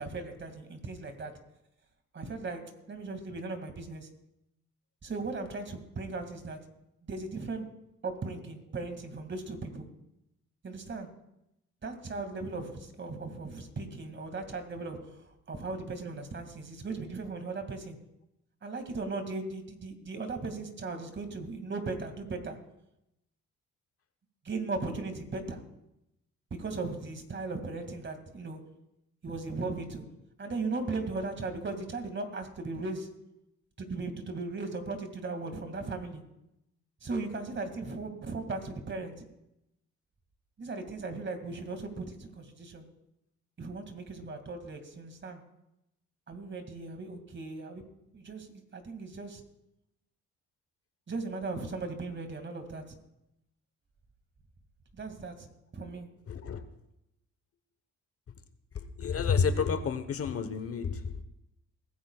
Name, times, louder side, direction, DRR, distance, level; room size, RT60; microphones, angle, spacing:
voice 1, 0.0-1.3 2.1-4.1 5.0-6.6 7.0-7.7 8.0-9.9 10.6-11.1 11.8-15.2 15.5-18.0 18.6-22.6 24.4-25.6 26.6-28.6 29.2-30.0 30.4-33.1 33.8-36.2 37.0-39.1 40.6-42.9 43.6-45.4 46.3-47.9 48.1-49.4 51.1-52.8 54.9-55.5 55.7-56.1, right 3 dB, 40° right, 6 dB, 2.3 m, -37 dB
voice 2, 56.3-56.7 58.7-61.2, left 6 dB, 50° left, 10 dB, 1.2 m, -30 dB
22.5 x 16.0 x 2.4 m, 0.84 s
cardioid pair, 90°, 30 cm